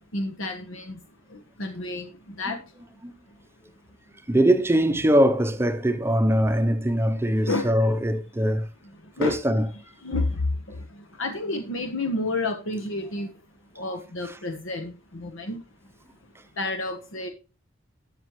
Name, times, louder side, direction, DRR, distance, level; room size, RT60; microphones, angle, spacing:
voice 1, 0.1-0.9 1.6-2.1 2.4-2.6 7.4-7.7 9.2-9.4 10.0-10.3 10.7-10.8 11.2-13.3 13.8-15.6 16.6-17.3, left 2 dB, 80° left, 1.2 m, -30 dB
voice 2, 4.3-8.7 9.2-9.7 14.3-14.4, equal, 10° right, 0.6 m, -22 dB
12.5 x 6.9 x 3.1 m
head